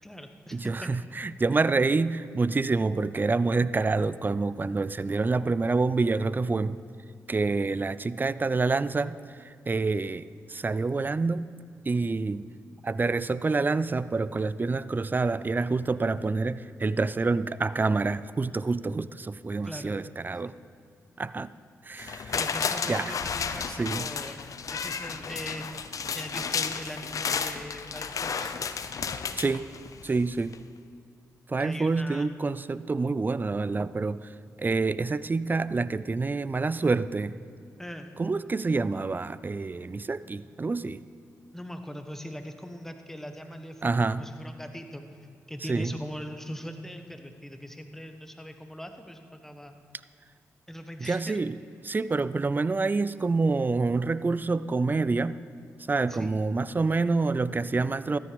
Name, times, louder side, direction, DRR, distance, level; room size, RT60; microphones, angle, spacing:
voice 1, 0.0-0.9 19.6-20.0 20.4-20.5 22.3-25.9 26.1-28.5 31.6-32.3 37.8-38.1 41.5-45.0 45.5-49.7 50.7-51.4 56.1-56.3, equal, 5° left, 1.3 m, -41 dB
voice 2, 0.5-6.8 7.3-11.5 11.8-12.5 12.8-20.5 21.2-21.5 21.8-22.3 22.9-23.2 23.8-24.1 29.4-29.7 30.0-30.6 31.5-34.3 34.6-37.4 38.2-41.1 43.8-44.3 45.7-46.0 51.0-51.6 51.8-55.4 55.9-58.2, right 3 dB, 30° right, 0.4 m, -27 dB
sound 1, 22.0-30.1 30.5-30.6, left 6 dB, 60° left, 0.6 m, -32 dB
13.5 x 10.0 x 5.2 m
supercardioid pair, 45°, 7 cm